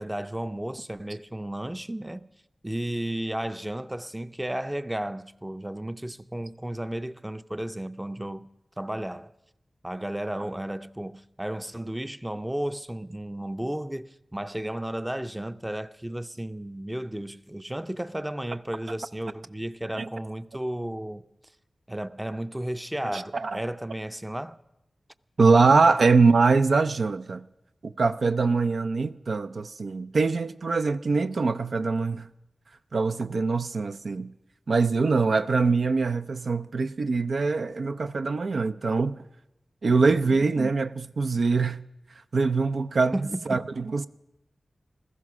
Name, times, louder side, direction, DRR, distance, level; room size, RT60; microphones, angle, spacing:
voice 1, 0.0-2.3 2.6-8.5 8.8-9.3 9.8-21.2 21.9-24.6 40.2-40.4 43.1-43.7, right 1 dB, 15° right, 0.5 m, -33 dB
voice 2, 23.1-23.6 25.4-27.4 27.8-32.3 32.9-34.3 34.7-39.2 39.8-41.8 42.3-43.1 43.5-44.1, right 4 dB, 80° right, 0.4 m, -23 dB
15.5 x 14.0 x 6.0 m
cardioid pair, 45°, 0 cm